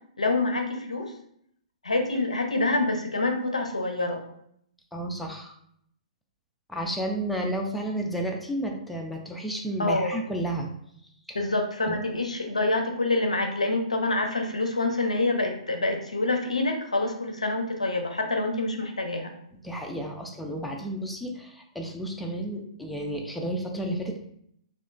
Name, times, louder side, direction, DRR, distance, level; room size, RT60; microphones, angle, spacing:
voice 1, 0.2-1.2 1.8-4.2 9.8-10.2 11.3-19.3, left 2 dB, 80° left, 4 dB, 0.4 m, -26 dB
voice 2, 4.9-5.5 6.7-10.7 11.3-11.4 11.9-12.0 19.6-24.2, right 1 dB, ahead, 0 dB, 0.3 m, -32 dB
2.8 x 2.1 x 2.4 m, 0.69 s
figure-of-eight pair, 115°, 4 cm